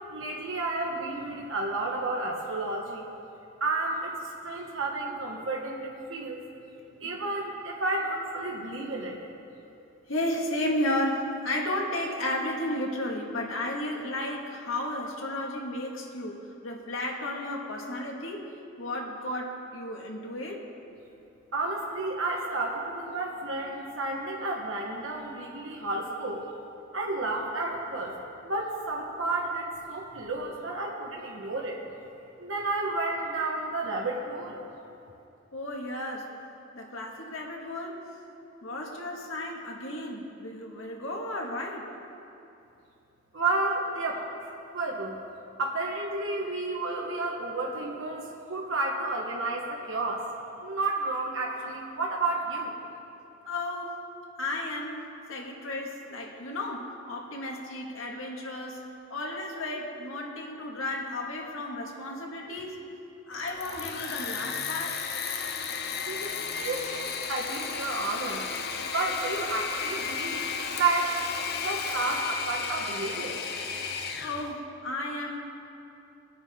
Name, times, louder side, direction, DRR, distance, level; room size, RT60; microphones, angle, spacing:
voice 1, 0.1-3.1 3.6-6.5 7.0-9.2 21.5-26.5 26.9-28.1 28.4-31.8 32.4-34.6 43.3-44.2 44.7-45.2 45.6-50.2 50.6-52.7 66.1-68.4 68.8-71.1 71.6-73.4, right 2 dB, 75° right, -2 dB, 1.4 m, -31 dB
voice 2, 10.1-18.5 18.8-20.6 35.5-36.3 36.7-38.0 38.6-41.9 53.5-54.0 54.4-58.8 59.1-62.8 63.3-65.0 74.2-75.4, left 1 dB, 85° left, 0 dB, 1.9 m, -33 dB
Engine / Mechanisms, 63.3-74.5, left 6 dB, 50° left, 0.8 m, -34 dB
21.5 x 9.3 x 3.7 m, 2.8 s
head